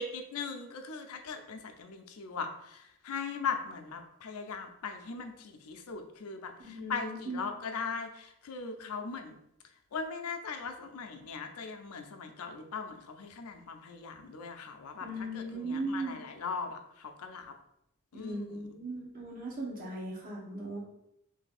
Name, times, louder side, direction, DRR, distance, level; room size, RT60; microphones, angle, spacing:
voice 1, 0.0-9.3 9.9-17.5 18.1-18.6, left 5 dB, 80° left, 6 dB, 0.5 m, -39 dB
voice 2, 6.6-7.4 15.0-16.2 18.1-20.8, right 1 dB, 40° right, -4 dB, 1.2 m, -38 dB
3.2 x 2.7 x 4.1 m, 0.80 s
head